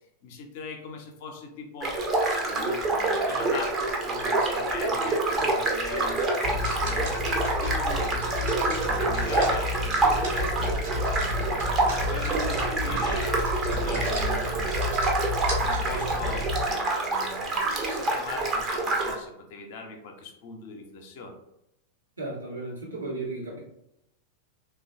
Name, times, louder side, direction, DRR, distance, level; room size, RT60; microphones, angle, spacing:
voice 1, 0.2-2.0 2.3-11.6 12.0-13.4 13.7-14.9 15.6-21.4, left 3 dB, 50° left, 3 dB, 0.5 m, -40 dB
sound 1, 1.8-19.1, right 2 dB, 25° right, 0.6 m, -27 dB
sound 2, 6.4-16.7, left 2 dB, 50° right, 1.2 m, -31 dB
voice 2, 22.2-23.6, right 2 dB, 80° right, -5 dB, 1.0 m, -34 dB
3.0 x 2.2 x 2.5 m, 0.83 s
figure-of-eight pair, 90°, 0 cm